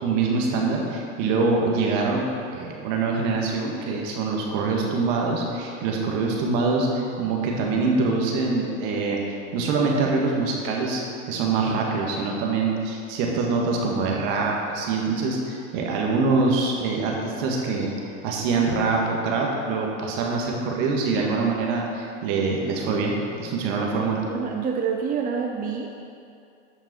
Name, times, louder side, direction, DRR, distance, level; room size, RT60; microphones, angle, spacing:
voice 1, 0.0-9.2 9.5-17.9 18.2-24.3, right 3 dB, 55° right, -1 dB, 2.0 m, -24 dB
voice 2, 24.3-26.0, right 6 dB, 25° right, 2 dB, 0.6 m, -27 dB
11.5 x 6.0 x 4.5 m, 2.5 s
hypercardioid pair, 105°, 35 cm